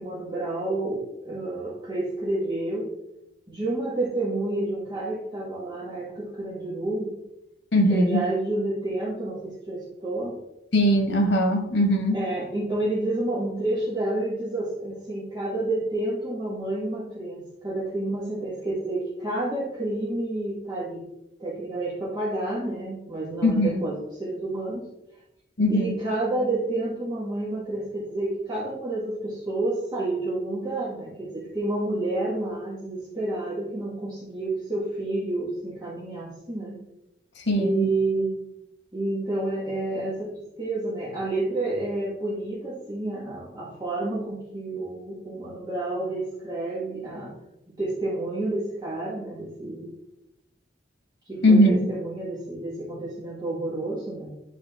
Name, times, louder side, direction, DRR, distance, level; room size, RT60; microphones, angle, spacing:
voice 1, 0.0-2.9 3.5-7.1 7.9-10.4 12.1-21.0 21.4-24.9 25.7-36.8 37.6-38.4 38.9-47.3 47.7-49.9 51.3-54.3, right 2 dB, 25° right, -9 dB, 1.6 m, -29 dB
voice 2, 7.7-8.3 10.7-12.2 23.4-23.8 25.6-25.9 37.5-37.9 51.4-51.7, equal, 85° left, 4 dB, 1.4 m, -20 dB
10.0 x 3.9 x 3.6 m, 0.89 s
head